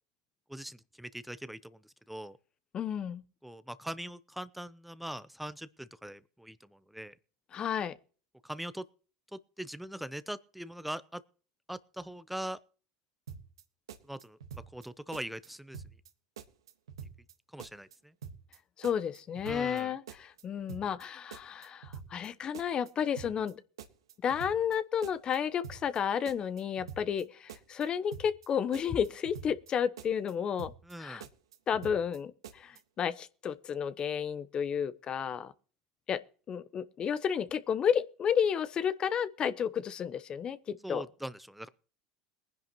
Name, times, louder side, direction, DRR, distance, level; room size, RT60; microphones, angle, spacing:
voice 1, 0.5-1.8 2.1-2.4 3.4-7.2 8.4-8.9 9.3-11.2 11.7-12.6 14.1-14.4 14.7-15.8 17.5-18.1 19.4-19.9 30.9-31.2 40.8-41.7, right 1 dB, 5° right, 0.7 m, -41 dB
voice 2, 2.7-3.2 7.5-8.0 18.8-23.6 24.2-30.7 31.0-31.2 31.7-35.5 36.1-41.1, left 8 dB, 35° left, 0.8 m, -32 dB
sound 1, 13.3-13.6 13.9-14.9 15.1-15.5 15.7-16.1 16.4-17.3 17.6-17.9 18.2-18.6 18.8-19.8 20.1-20.4 20.7-21.0 21.3-22.3 22.5-22.9 23.2-23.5 23.8-24.8 25.0-25.4 25.6-26.0 26.2-27.2 27.5-27.8 28.1-28.5 28.7-29.7 30.0-30.3 30.6-30.9 31.2-32.2 32.4-32.8, right 7 dB, 85° right, 1.4 m, -46 dB
22.0 x 10.5 x 3.0 m
hypercardioid pair, 85°, 3 cm